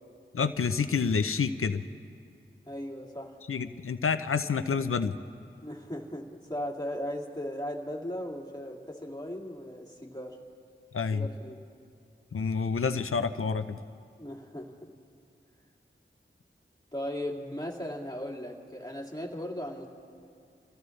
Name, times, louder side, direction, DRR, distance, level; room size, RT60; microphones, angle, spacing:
voice 1, 0.3-1.8 3.5-5.2 10.9-11.3 12.3-13.8, left 5 dB, 85° left, 10 dB, 0.6 m, -28 dB
voice 2, 2.7-3.4 5.6-10.4 11.1-11.6 14.2-14.9 16.9-19.9, equal, 20° left, -1 dB, 2.2 m, -37 dB
28.0 x 15.5 x 3.2 m, 2.4 s
wide cardioid pair, 50°, 21 cm